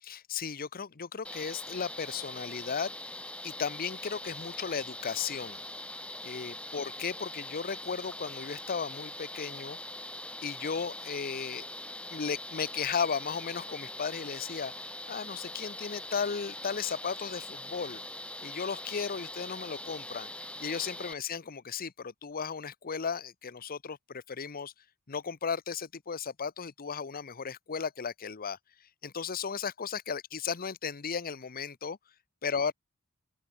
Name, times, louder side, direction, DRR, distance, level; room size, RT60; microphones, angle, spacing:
voice 1, 0.0-2.9 3.4-5.6 6.2-9.8 10.4-11.7 12.1-18.0 18.4-20.3 20.6-24.7 25.1-28.6 29.0-32.0 32.4-32.7, left 6 dB, 40° left, 0.8 m, -35 dB
sound 1, 1.2-21.1, left 1 dB, 5° left, 3.6 m, -42 dB
open air
head